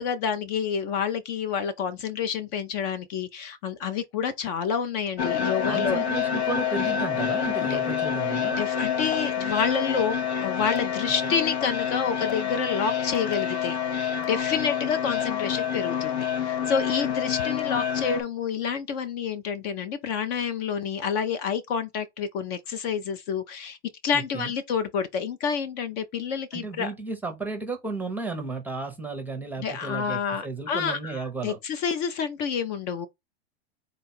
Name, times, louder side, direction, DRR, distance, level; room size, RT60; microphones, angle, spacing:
voice 1, 0.0-6.0 7.6-7.8 8.6-23.8 24.0-26.9 29.6-33.1, left 6 dB, 40° left, 0.5 m, -29 dB
sound 1, 5.2-18.2, left 8 dB, 85° left, 0.9 m, -27 dB
voice 2, 5.7-8.6 11.2-11.4 24.1-24.5 26.5-31.6, right 3 dB, 5° right, 0.6 m, -33 dB
3.9 x 2.3 x 4.1 m
supercardioid pair, 140°, 32 cm